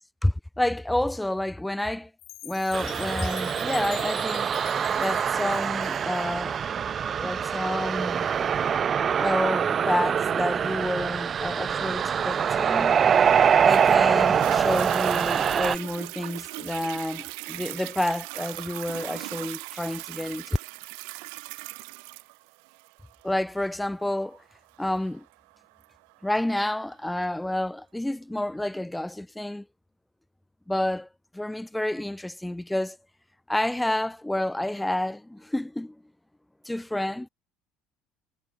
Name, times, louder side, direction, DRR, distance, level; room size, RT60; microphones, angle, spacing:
voice 1, 0.0-2.1 2.4-4.5 5.0-6.6 7.2-8.3 9.2-13.0 13.6-20.6 23.2-24.4 24.8-25.2 26.2-29.6 30.7-31.1 31.3-33.0 33.5-36.0 36.7-37.3, left 1 dB, 5° left, 5.7 m, -29 dB
Chime, 2.2-6.4, left 15 dB, 60° left, 4.2 m, -44 dB
sound 1, 2.7-15.8, right 7 dB, 35° right, 0.5 m, -24 dB
Toilet flush, 13.7-26.7 27.3-27.4, right 40 dB or more, 85° right, 1.8 m, -39 dB
cardioid pair, 125°, 0 cm